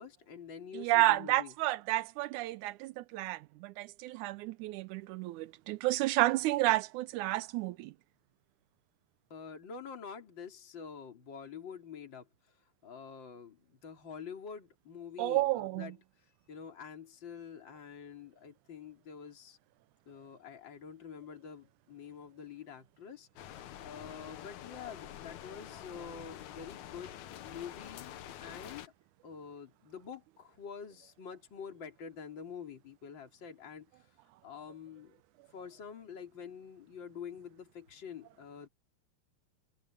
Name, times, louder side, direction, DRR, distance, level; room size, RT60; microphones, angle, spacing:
voice 1, 0.0-1.5 9.3-15.9 16.2-19.6 20.1-28.1 28.4-28.9 29.2-34.1 34.4-35.2 35.5-38.7, left 7 dB, 40° left, 3.6 m, -47 dB
voice 2, 0.7-7.9 15.2-15.9, right 17 dB, 90° right, 2.1 m, -31 dB
sound 1, 23.4-28.9, left 11 dB, 75° left, 2.4 m, -47 dB
omnidirectional pair, 3.4 m